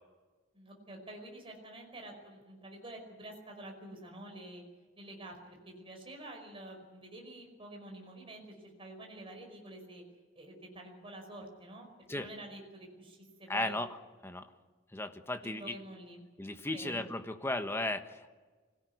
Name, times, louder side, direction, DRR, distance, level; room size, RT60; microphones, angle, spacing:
voice 1, 0.5-4.6 5.0-10.0 10.3-11.9 12.1-13.8 15.4-16.2 16.7-17.0, right 1 dB, 30° right, 1 dB, 5.2 m, -48 dB
voice 2, 13.5-14.0 14.2-14.5 14.9-15.7 16.4-18.3, left 2 dB, 15° left, 7 dB, 1.3 m, -35 dB
25.5 x 17.5 x 9.5 m, 1.4 s
head